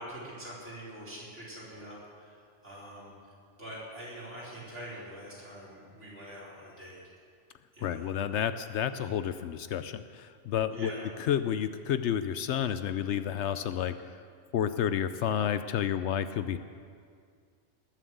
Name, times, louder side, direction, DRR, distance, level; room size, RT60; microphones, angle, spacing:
voice 1, 0.0-3.1 3.6-7.0 7.7-8.1 10.7-11.0, right 1 dB, 80° right, -7 dB, 4.9 m, -44 dB
voice 2, 7.8-10.9 11.2-14.2 14.5-16.6, left 9 dB, 75° left, 11 dB, 0.9 m, -30 dB
19.5 x 7.5 x 7.8 m, 2.1 s
omnidirectional pair, 1.2 m